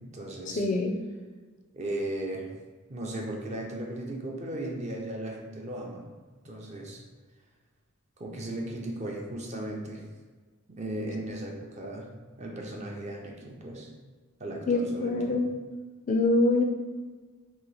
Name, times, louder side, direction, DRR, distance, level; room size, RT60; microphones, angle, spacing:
voice 1, 0.0-0.6 1.7-2.5 2.9-6.0 6.4-7.0 8.2-10.0 10.7-12.1 12.4-13.9 14.4-15.4, right 1 dB, 30° right, 0 dB, 0.5 m, -36 dB
voice 2, 0.6-0.9 14.7-15.6 16.1-16.6, left 2 dB, 35° left, 3 dB, 0.4 m, -24 dB
3.0 x 2.8 x 3.9 m, 1.4 s
head